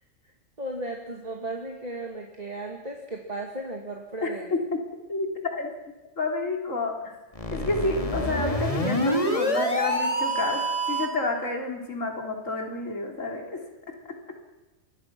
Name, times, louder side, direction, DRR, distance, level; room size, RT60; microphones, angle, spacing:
voice 1, 0.6-4.5, right 2 dB, 30° right, 1 dB, 2.2 m, -35 dB
voice 2, 4.2-4.8 5.1-5.7 6.2-7.2 7.5-14.0, left 2 dB, 75° left, 2 dB, 3.9 m, -30 dB
sound 1, 7.3-11.3, equal, 25° left, 2.5 m, -26 dB
27.0 x 21.5 x 6.1 m, 1.1 s
omnidirectional pair, 1.3 m